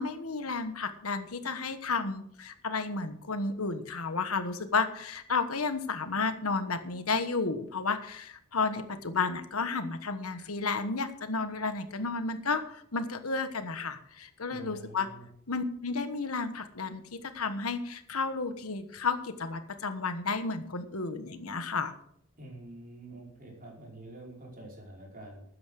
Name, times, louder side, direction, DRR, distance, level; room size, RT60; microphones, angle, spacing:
voice 1, 0.0-15.1 15.5-21.9, left 4 dB, 80° left, 10 dB, 1.3 m, -32 dB
voice 2, 14.5-15.3 22.4-25.4, right 2 dB, 40° right, -2 dB, 5.2 m, -47 dB
12.5 x 9.5 x 6.4 m, 0.68 s
head